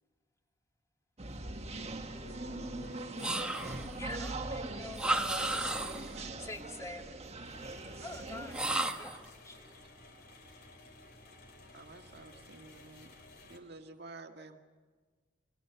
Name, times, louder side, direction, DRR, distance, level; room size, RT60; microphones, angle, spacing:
sound 1, 1.2-8.6, right 2 dB, 35° right, 1.6 m, -41 dB
voice 1, 1.8-3.9, left 1 dB, 85° left, 0 dB, 5.1 m, -53 dB
voice 2, 2.8-3.1 9.6-9.7 11.7-13.1 13.5-14.6, right 3 dB, 60° right, 4 dB, 1.9 m, -51 dB
sound 2, 3.2-4.0 4.9-6.2 8.5-9.3, right 2 dB, 5° right, 1.4 m, -33 dB
voice 3, 4.0-5.1 5.5-7.2 8.0-9.8, left 2 dB, 15° left, 2 dB, 2.6 m, -47 dB
sound 3, 7.4-13.6, left 2 dB, 55° left, 3.5 m, -55 dB
27.5 x 23.5 x 7.0 m, 1.5 s
head